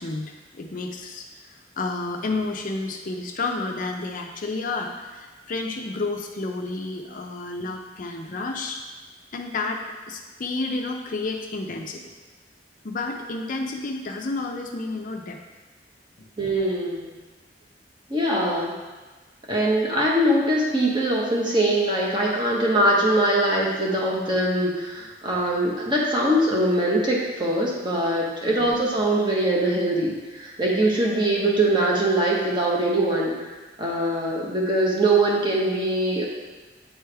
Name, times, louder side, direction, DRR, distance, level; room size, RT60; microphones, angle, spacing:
voice 1, 0.0-8.8 9.3-9.8 10.1-12.0 12.8-15.4 16.2-16.3 28.4-28.7, left 3 dB, 45° left, 2 dB, 0.5 m, -31 dB
voice 2, 16.4-17.1 18.1-18.8 19.5-33.3 33.8-36.2, right 1 dB, 25° right, -4 dB, 1.1 m, -22 dB
8.7 x 3.4 x 3.4 m, 1.2 s
head